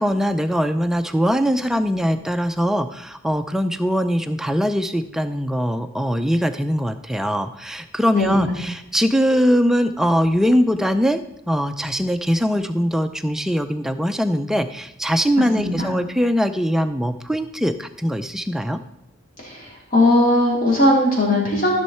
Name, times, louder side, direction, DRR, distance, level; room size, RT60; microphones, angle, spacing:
voice 1, 0.0-11.2 11.5-18.8, equal, ahead, 7 dB, 0.4 m, -21 dB
voice 2, 8.1-8.5 15.6-15.9 19.4-21.8, left 1 dB, 40° left, -4 dB, 3.7 m, -18 dB
14.0 x 6.3 x 4.3 m, 0.83 s
head